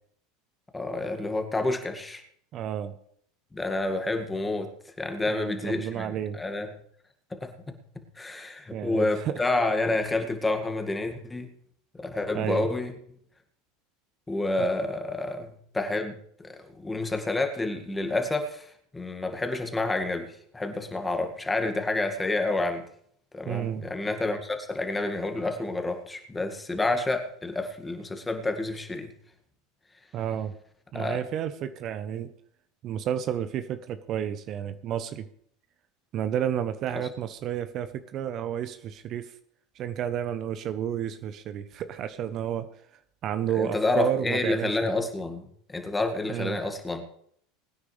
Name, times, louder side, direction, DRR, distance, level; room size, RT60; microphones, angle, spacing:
voice 1, 0.7-2.2 3.5-6.7 7.3-11.5 11.9-13.0 14.3-16.2 16.4-22.9 23.3-29.1 30.9-31.2 37.0-37.1 43.5-47.0, left 2 dB, 15° left, 5 dB, 2.0 m, -29 dB
voice 2, 2.5-2.9 5.3-6.4 8.7-9.4 12.3-12.7 14.6-14.7 23.5-23.8 30.1-30.5 30.9-32.3 32.8-35.3 36.1-39.3 39.7-42.7 43.2-44.8 46.3-46.6, right 9 dB, 45° right, 11 dB, 0.9 m, -31 dB
22.0 x 9.7 x 3.3 m, 0.66 s
hypercardioid pair, 85°, 0 cm